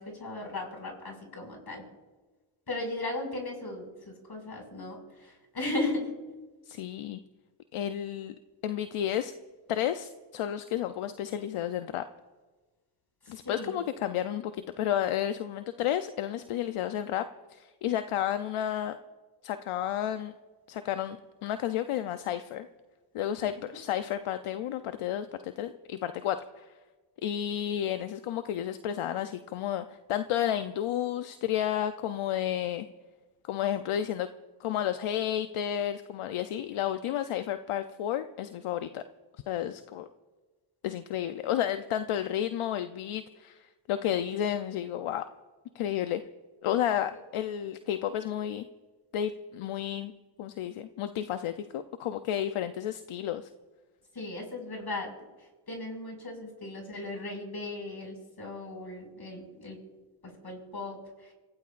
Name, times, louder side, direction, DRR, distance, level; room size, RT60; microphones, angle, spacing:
voice 1, 0.0-1.8 2.7-6.1 13.3-13.8 23.4-23.8 47.1-47.2 54.1-55.1 55.7-59.8 60.2-61.0, left 2 dB, 50° left, 1 dB, 5.8 m, -37 dB
voice 2, 6.7-7.2 7.7-8.3 8.6-9.3 9.7-12.0 13.3-14.5 14.8-17.2 17.5-19.0 19.4-20.3 20.7-22.7 23.1-26.7 27.2-32.9 33.4-34.3 34.6-39.0 39.5-40.1 40.8-45.2 45.7-46.2 46.6-48.6 49.1-50.1 50.4-53.5, left 10 dB, 80° left, 10 dB, 0.7 m, -31 dB
27.5 x 16.0 x 2.5 m, 1.3 s
cardioid pair, 55°, 50 cm